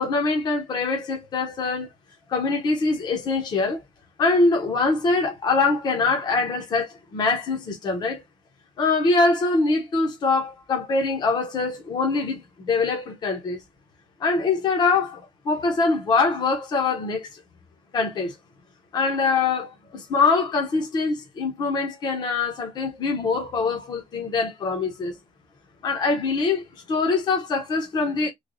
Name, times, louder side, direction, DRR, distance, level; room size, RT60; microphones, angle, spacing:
voice 1, 0.0-1.9 2.3-3.8 4.2-8.2 8.8-13.6 14.2-17.4 17.9-18.3 18.9-25.2 25.8-28.3, left 3 dB, 35° left, 0.9 m, -23 dB
3.2 x 2.3 x 3.9 m
cardioid pair, 175°, 12 cm